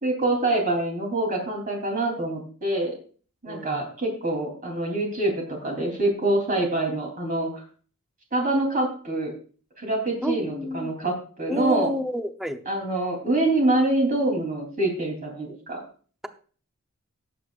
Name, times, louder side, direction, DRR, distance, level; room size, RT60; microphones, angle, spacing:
voice 1, 0.0-2.9 3.4-7.6 8.3-9.3 9.8-11.9 12.7-15.8, right 2 dB, 40° right, 1 dB, 3.3 m, -25 dB
voice 2, 3.5-3.9 10.2-10.9 11.5-12.6, equal, ahead, 7 dB, 0.8 m, -30 dB
19.0 x 7.9 x 2.5 m, 0.41 s
head